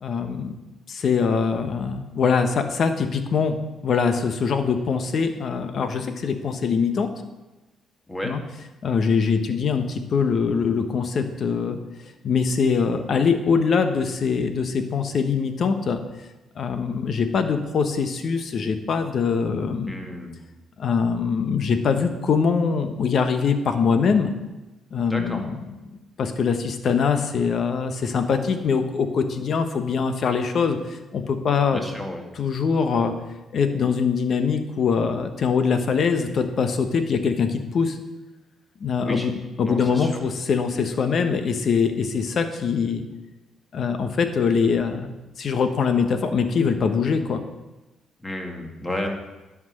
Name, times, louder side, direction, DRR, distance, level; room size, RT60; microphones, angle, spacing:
voice 1, 0.0-0.5 0.9-3.6 3.8-7.1 8.2-8.4 8.8-11.8 12.2-16.0 16.6-19.9 20.8-24.3 24.9-25.6 26.2-31.8 32.4-33.1 33.5-38.0 38.8-43.0 43.7-45.1 45.4-47.4, left 5 dB, 55° left, 8 dB, 1.1 m, -23 dB
voice 2, 19.9-20.4 25.1-25.4 31.7-32.2 39.0-39.3 39.6-40.2 48.2-49.1, left 1 dB, 15° left, 2 dB, 1.9 m, -31 dB
10.5 x 6.1 x 6.4 m, 1.1 s
cardioid pair, 90°, 0 cm